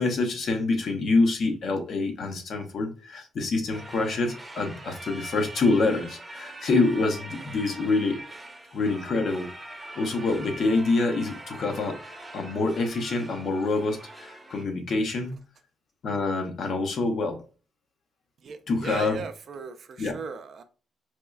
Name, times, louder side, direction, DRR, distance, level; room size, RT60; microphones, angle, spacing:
voice 1, 0.0-8.2 8.7-12.0 12.3-15.4 16.0-17.4 18.7-19.2 20.0-20.2, left 3 dB, 60° left, 0.7 m, -26 dB
sound 1, 3.7-14.6, right 2 dB, 10° right, 0.7 m, -43 dB
voice 2, 18.4-20.6, right 5 dB, 55° right, 0.4 m, -37 dB
4.2 x 2.3 x 2.3 m
cardioid pair, 90°, 0 cm